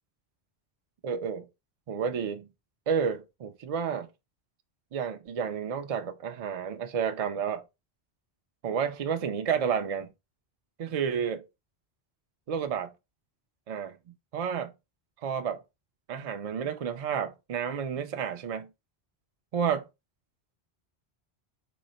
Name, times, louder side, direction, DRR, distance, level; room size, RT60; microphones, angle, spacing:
voice 1, 1.0-1.5 1.9-2.5 2.9-4.1 4.9-7.6 8.6-10.1 10.8-11.4 12.5-12.9 13.7-14.0 14.3-14.7 15.2-15.6 16.1-18.7 19.5-19.9, right 7 dB, 50° right, 0.4 m, -30 dB
3.8 x 2.0 x 3.9 m
omnidirectional pair, 1.1 m